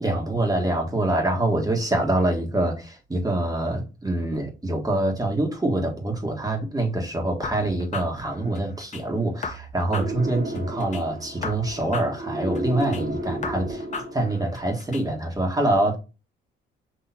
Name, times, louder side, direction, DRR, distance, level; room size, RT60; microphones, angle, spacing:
voice 1, 0.0-13.8 14.1-16.0, right 1 dB, 20° right, 1.5 m, -25 dB
sound 1, 7.4-9.0 9.4-11.0 11.4-13.0 13.4-15.0, left 4 dB, 35° left, 0.9 m, -36 dB
sound 2, 9.9-14.5, right 1 dB, 55° right, 1.9 m, -33 dB
6.1 x 3.0 x 2.8 m
cardioid pair, 90°, 20 cm